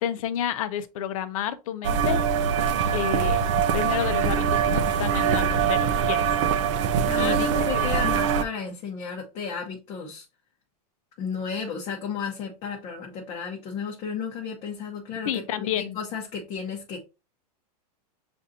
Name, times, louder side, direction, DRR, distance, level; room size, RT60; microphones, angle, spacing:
voice 1, 0.0-2.3 2.9-6.3 7.2-7.5 7.7-8.1 15.3-16.0, left 10 dB, 55° left, 0.6 m, -30 dB
sound 1, 1.8-8.4, right 7 dB, 50° right, 0.5 m, -23 dB
voice 2, 7.1-10.2 11.2-17.1, left 6 dB, 30° left, 0.8 m, -33 dB
6.9 x 2.6 x 2.7 m
supercardioid pair, 160°, 20 cm